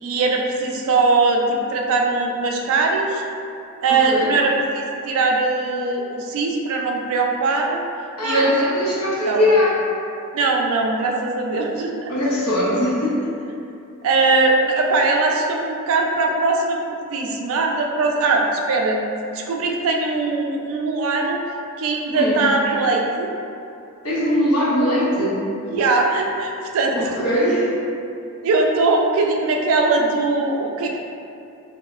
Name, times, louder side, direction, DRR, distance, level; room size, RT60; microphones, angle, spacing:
voice 1, 0.0-3.2 3.8-7.8 8.2-8.5 9.2-9.5 10.3-12.1 14.0-19.0 19.3-21.4 21.8-23.3 25.7-27.1 28.4-31.0, right 3 dB, 65° right, 2 dB, 0.3 m, -20 dB
voice 2, 3.9-4.4 8.2-9.9 12.1-13.3 22.1-22.4 24.0-25.4 26.9-27.7, left 1 dB, 85° left, -7 dB, 0.7 m, -21 dB
3.0 x 2.0 x 2.2 m, 2.6 s
head